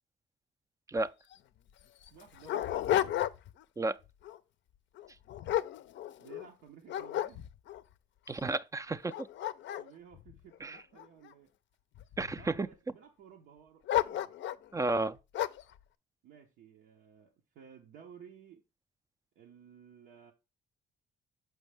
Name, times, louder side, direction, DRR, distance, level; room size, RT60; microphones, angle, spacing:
Dog, 1.0-1.1 1.3-1.4 2.0-3.6 4.1-4.4 5.0-6.5 6.9-7.8 8.4-8.5 9.0-11.3 11.9-12.6 13.9-14.7 15.3-15.7, left 12 dB, 65° left, 0.4 m, -33 dB
voice 1, 2.1-2.7 6.2-7.4 9.8-11.5 12.4-14.3 16.2-18.6 19.3-20.3, right 8 dB, 90° right, 0.9 m, -55 dB
voice 2, 8.3-9.3 10.6-10.8 12.2-12.7 14.7-15.2, right 2 dB, 15° right, 0.3 m, -32 dB
6.2 x 5.2 x 3.3 m
cardioid pair, 90°, 20 cm